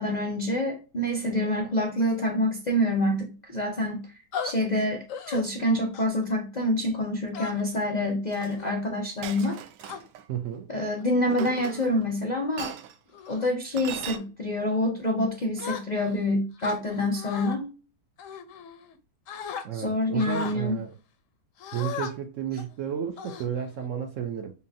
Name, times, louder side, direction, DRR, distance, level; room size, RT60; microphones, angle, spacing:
voice 1, 0.0-4.0 4.4-9.6 10.7-12.7 13.3-17.7 19.7-20.8, left 1 dB, 85° left, 0.3 m, -27 dB
sound 1, 4.3-4.5 5.1-5.4 5.9-6.2 7.3-7.8 8.4-8.7 9.4-10.0 10.8-11.0 11.5-11.9 12.4-12.6 13.1-13.5 14.0-14.3 15.6-16.2 16.6-17.6 18.2-19.0 19.3-19.6 20.2-20.6 21.6-22.1 22.6-22.7 23.2-23.9, left 7 dB, 65° left, 0.8 m, -37 dB
Chink clink, 8.3-8.5 9.2-10.2 11.3-12.1 12.6-12.9 13.8-14.2, right 9 dB, 90° right, 1.2 m, -38 dB
voice 2, 10.3-10.7 19.6-20.9 21.7-24.5, right 8 dB, 70° right, 0.7 m, -32 dB
5.5 x 2.4 x 2.6 m
omnidirectional pair, 1.8 m